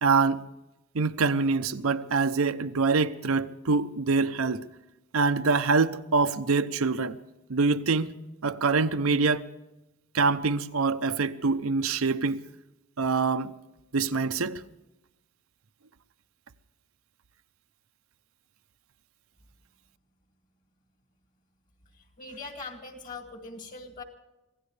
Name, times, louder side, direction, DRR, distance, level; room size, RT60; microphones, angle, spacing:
voice 1, 0.0-0.4 0.9-4.6 5.1-7.2 7.5-8.1 8.4-9.5 10.1-12.4 13.0-13.5 13.9-14.6, right 4 dB, 85° right, 0.7 m, -25 dB
voice 2, 21.8-24.0, left 3 dB, 40° left, 2.5 m, -42 dB
25.5 x 17.0 x 3.3 m
head